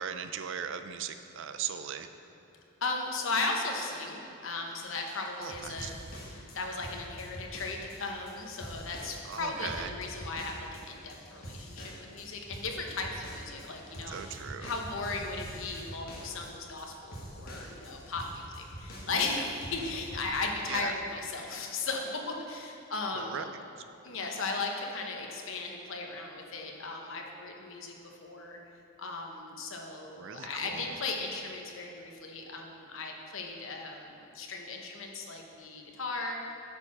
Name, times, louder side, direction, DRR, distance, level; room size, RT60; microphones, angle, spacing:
voice 1, 0.0-2.1 5.4-5.9 9.3-9.9 14.1-14.7 20.7-20.9 23.1-23.5 30.2-30.9, right 8 dB, 55° right, 9 dB, 0.4 m, -38 dB
voice 2, 2.8-5.9 6.3-23.5 24.0-27.9 28.2-28.6 29.0-36.4, left 3 dB, 60° left, 1 dB, 0.9 m, -36 dB
sound 1, 4.8-20.3, equal, 40° left, 1.4 m, -45 dB
8.5 x 4.6 x 6.0 m, 2.9 s
head